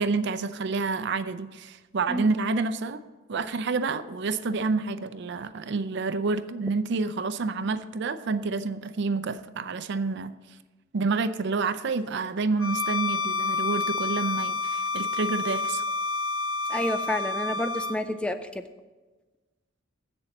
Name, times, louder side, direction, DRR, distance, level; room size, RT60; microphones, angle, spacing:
voice 1, 0.0-3.0 3.3-10.4 10.9-15.8, right 4 dB, 60° right, 12 dB, 0.5 m, -28 dB
Bowed string instrument, 12.6-18.0, left 3 dB, 80° left, 0.5 m, -29 dB
voice 2, 16.7-18.6, left 1 dB, 5° left, 9 dB, 0.4 m, -29 dB
7.8 x 6.9 x 7.1 m, 1.2 s
head